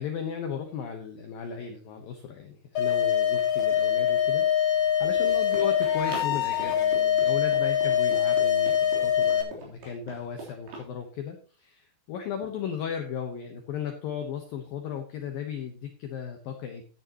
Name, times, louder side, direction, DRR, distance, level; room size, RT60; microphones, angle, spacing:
voice 1, 0.0-16.8, left 7 dB, 70° left, 4 dB, 2.3 m, -36 dB
sound 1, 2.8-9.4, left 9 dB, 45° left, 3.3 m, -24 dB
Run, 4.7-10.9, right 3 dB, 60° right, 5.4 m, -44 dB
13.5 x 9.7 x 3.0 m, 0.37 s
omnidirectional pair, 5.4 m